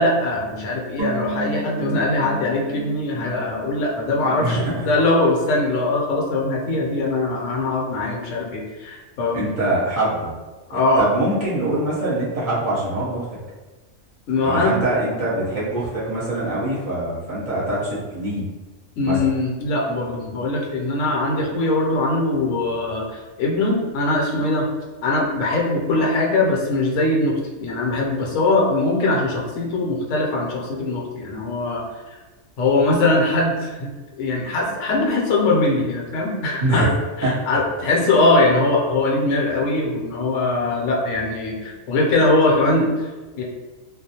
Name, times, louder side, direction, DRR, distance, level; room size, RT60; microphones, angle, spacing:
voice 1, 0.0-9.5 10.7-11.0 14.3-14.8 19.0-23.1 23.4-24.7 25.0-31.8 32.6-33.9 34.2-36.9 37.2-42.9 43.4-43.5, left 2 dB, 70° left, -2 dB, 0.9 m, -21 dB
sound 1, 1.0-4.3 4.5-4.6, right 1 dB, 70° right, 0.4 m, -32 dB
voice 2, 4.1-4.8 9.3-10.3 10.7-13.3 14.4-18.4 19.0-19.2 36.6-36.9 37.2-37.3, right 1 dB, 40° right, -9 dB, 0.9 m, -24 dB
2.4 x 2.0 x 2.7 m, 1.2 s
omnidirectional pair, 1.4 m